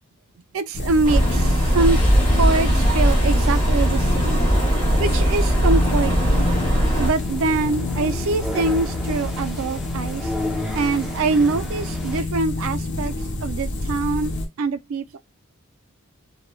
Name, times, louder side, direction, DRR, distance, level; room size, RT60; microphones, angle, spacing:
voice 1, 0.5-2.0 2.3-4.4 5.0-6.5 7.0-10.3 10.7-13.1 13.4-15.2, right 3 dB, 70° right, 0.4 m, -24 dB
sound 1, 0.7-14.5, left 2 dB, 55° left, 0.6 m, -28 dB
sound 2, 1.0-7.1, equal, 25° left, 1.2 m, -19 dB
sound 3, 1.6-12.2, equal, ahead, 0.7 m, -35 dB
3.1 x 2.1 x 2.2 m
head